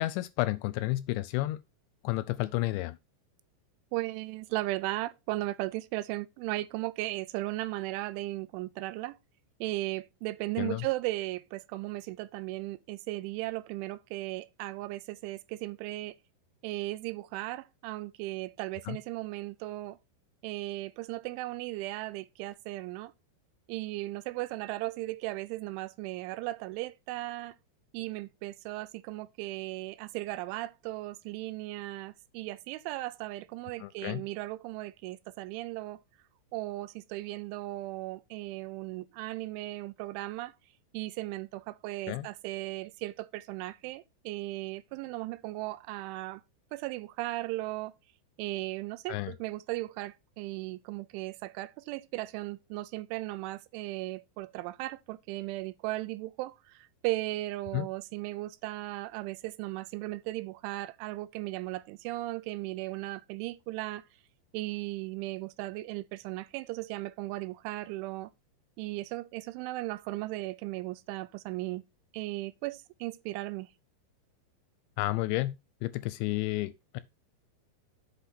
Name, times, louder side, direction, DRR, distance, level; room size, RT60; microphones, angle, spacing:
voice 1, 0.0-1.6 2.0-3.0 10.6-10.9 18.9-19.0 33.8-34.2 42.1-42.3 49.1-49.3 57.7-57.9 75.0-75.6 75.8-77.0, left 18 dB, 85° left, 2.6 m, -31 dB
voice 2, 3.9-9.2 9.6-16.2 16.6-20.0 20.4-23.1 23.7-27.6 27.9-36.0 36.5-40.5 40.9-46.4 46.7-47.9 48.4-64.1 64.5-68.3 68.8-71.8 72.1-73.7, right 18 dB, 90° right, 3.1 m, -36 dB
8.0 x 5.5 x 4.2 m
omnidirectional pair, 5.4 m